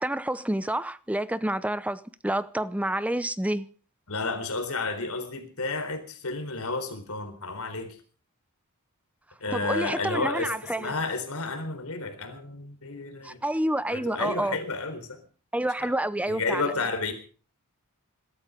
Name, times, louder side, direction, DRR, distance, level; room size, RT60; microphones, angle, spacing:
voice 1, 0.0-3.7 9.5-11.0 13.2-14.6 15.5-16.7, right 1 dB, 5° right, 0.7 m, -28 dB
voice 2, 4.1-8.0 9.4-13.4 13.9-15.2 15.8-15.9 16.3-17.1, left 3 dB, 75° left, 4.0 m, -31 dB
21.5 x 13.0 x 5.0 m
head